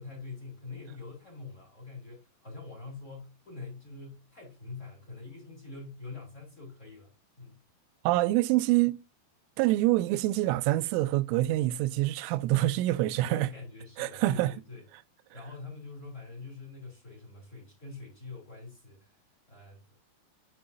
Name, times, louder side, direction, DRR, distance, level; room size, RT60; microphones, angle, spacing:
voice 1, 0.0-7.6 13.3-14.8 15.3-19.9, left 3 dB, 20° left, 2.1 m, -45 dB
voice 2, 8.0-9.0 9.6-13.5 14.0-14.5, right 16 dB, 85° right, 2.9 m, -26 dB
8.6 x 5.8 x 2.6 m
omnidirectional pair, 5.8 m